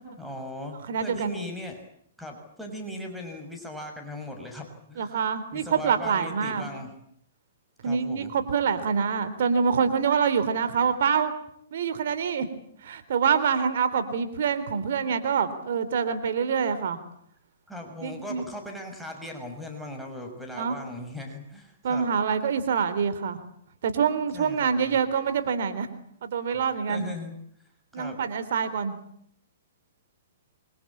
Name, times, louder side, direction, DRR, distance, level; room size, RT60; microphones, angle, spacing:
voice 1, 0.2-1.8 2.2-5.3 5.5-6.9 7.8-8.3 17.7-22.1 24.3-25.0 26.9-27.3 27.9-28.2, left 1 dB, ahead, 3 dB, 6.3 m, -38 dB
voice 2, 0.9-1.3 5.0-6.7 7.8-11.3 11.7-12.5 12.8-17.0 18.0-18.4 20.6-20.8 21.8-23.4 23.8-25.9 26.2-27.0 27.9-29.0, right 6 dB, 65° right, 11 dB, 3.5 m, -26 dB
27.0 x 24.0 x 8.7 m, 0.68 s
hypercardioid pair, 125°, 0 cm